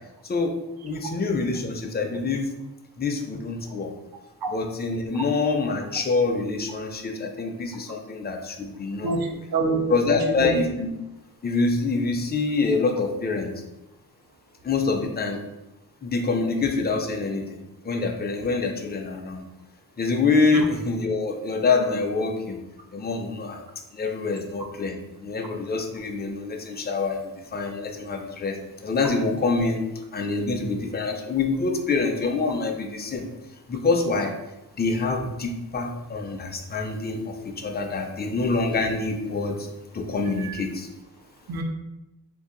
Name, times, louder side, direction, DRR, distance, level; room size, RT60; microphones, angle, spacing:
voice 1, 0.2-0.6 0.8-2.5 3.0-3.9 4.5-9.2 9.9-10.9 11.4-13.5 14.6-15.4 16.0-17.6 17.8-19.4 20.0-22.6 22.9-23.6 23.9-25.0 25.2-29.8 30.1-33.2 33.7-34.3 34.8-39.7 39.9-40.9, left 3 dB, 25° left, 3 dB, 0.4 m, -26 dB
voice 2, 9.0-10.5 20.5-20.6 40.4-40.5 41.5-41.6, right 3 dB, 70° right, 2 dB, 0.6 m, -27 dB
2.7 x 2.4 x 3.7 m, 0.93 s
wide cardioid pair, 80°, 38 cm